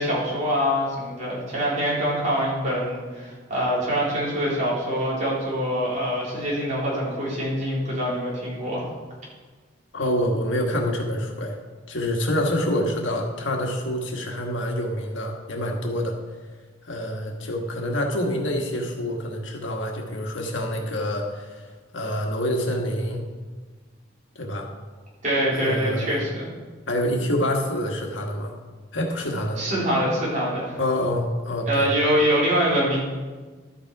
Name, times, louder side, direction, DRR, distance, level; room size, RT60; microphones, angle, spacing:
voice 1, 0.0-8.8 25.2-26.5 29.6-30.8 31.7-33.0, equal, 40° right, -6 dB, 3.9 m, -24 dB
voice 2, 9.9-11.6 11.9-16.2 16.8-23.2 24.3-24.7 25.6-26.2 26.9-28.5 28.9-29.6 30.8-31.9, left 1 dB, 90° left, 1 dB, 1.6 m, -26 dB
12.5 x 7.5 x 4.8 m, 1.4 s
head